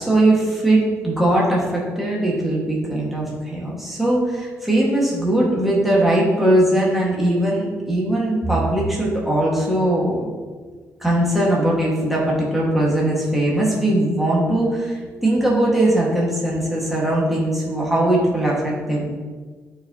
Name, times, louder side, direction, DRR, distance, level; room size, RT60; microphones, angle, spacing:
voice 1, 0.0-10.3 11.0-19.1, right 1 dB, 5° right, -5 dB, 1.6 m, -20 dB
11.0 x 4.6 x 2.8 m, 1.5 s
cardioid pair, 140°, 5 cm